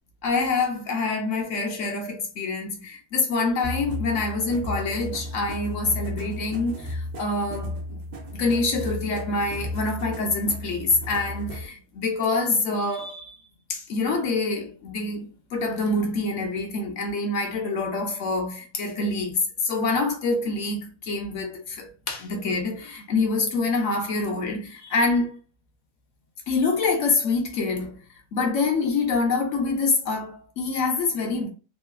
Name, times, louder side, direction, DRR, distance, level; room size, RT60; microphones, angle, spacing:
voice 1, 0.2-8.0 8.3-13.4 13.7-25.4 26.5-28.0 28.3-31.5, left 3 dB, 75° left, 1.1 m, -26 dB
sound 1, 3.6-11.7, left 1 dB, 50° right, 0.5 m, -34 dB
3.1 x 2.5 x 2.3 m
omnidirectional pair, 1.3 m